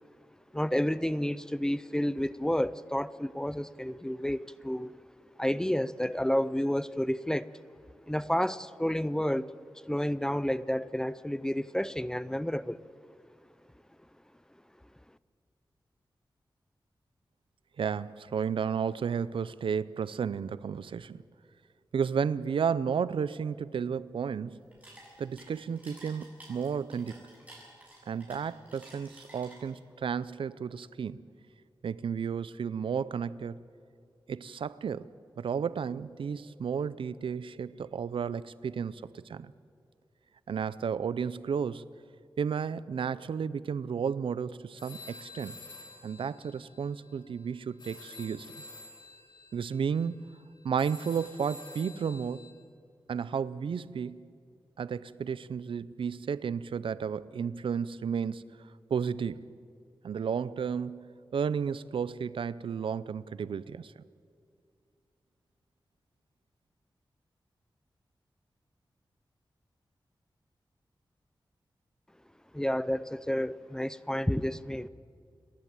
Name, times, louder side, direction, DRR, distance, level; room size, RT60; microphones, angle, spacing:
voice 1, 0.5-5.0 5.4-7.5 8.1-9.5 9.9-12.8 72.5-74.9, equal, 5° left, 0.5 m, -30 dB
voice 2, 17.8-21.2 21.9-24.6 25.2-27.2 28.1-31.2 31.8-33.6 34.3-35.1 35.4-39.0 39.3-39.5 40.5-41.9 42.4-45.6 46.0-48.6 49.5-50.2 50.6-52.5 53.1-54.2 54.8-58.4 58.9-59.5 60.0-63.9, right 6 dB, 90° right, 0.5 m, -32 dB
sound 1, 24.6-29.9, right 1 dB, 20° right, 7.5 m, -52 dB
sound 2, 44.8-52.5, left 3 dB, 60° left, 3.8 m, -50 dB
28.5 x 11.5 x 8.9 m
wide cardioid pair, 110°, 9 cm